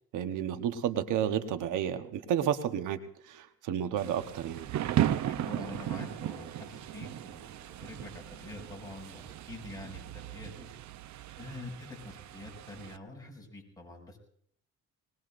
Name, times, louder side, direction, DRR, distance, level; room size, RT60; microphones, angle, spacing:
voice 1, 0.1-3.0 3.3-4.7, right 9 dB, 85° right, 8 dB, 1.1 m, -31 dB
Thunder / Rain, 4.0-13.0, right 12 dB, 70° right, 0.7 m, -36 dB
voice 2, 5.3-10.7 11.4-14.2, left 2 dB, 10° left, -2 dB, 6.7 m, -46 dB
21.0 x 20.5 x 2.6 m, 0.65 s
cardioid pair, 90°, 30 cm